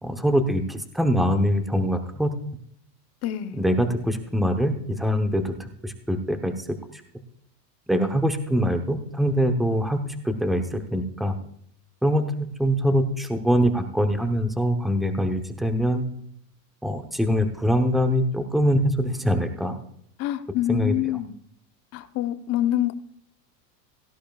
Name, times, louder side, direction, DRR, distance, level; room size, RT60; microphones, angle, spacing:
voice 1, 0.0-2.3 3.5-6.5 7.9-11.3 12.0-16.1 16.8-19.8 20.7-20.9, equal, ahead, 7 dB, 0.8 m, -23 dB
voice 2, 3.2-3.6 20.2-21.3 21.9-22.9, left 13 dB, 30° left, 8 dB, 0.8 m, -26 dB
17.5 x 13.0 x 2.4 m, 0.68 s
supercardioid pair, 135°, 50 cm